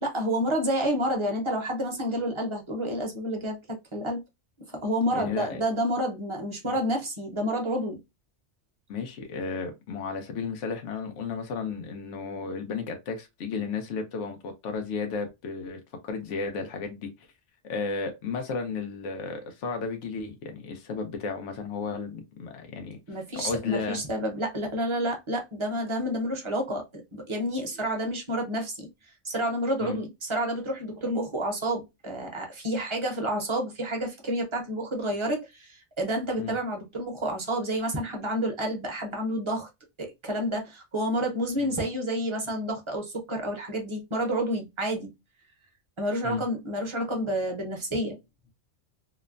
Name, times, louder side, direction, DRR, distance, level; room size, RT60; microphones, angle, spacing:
voice 1, 0.0-4.2 4.7-8.0 23.1-28.9 29.2-39.7 40.0-45.1 46.0-48.2, equal, 30° right, 0.7 m, -29 dB
voice 2, 5.1-5.6 6.7-6.8 8.9-17.1 17.6-23.0 23.3-24.0 29.8-30.0 36.4-36.5 41.6-41.7 46.2-46.4, left 5 dB, 85° left, 1.0 m, -33 dB
2.9 x 2.1 x 2.4 m
omnidirectional pair, 1.2 m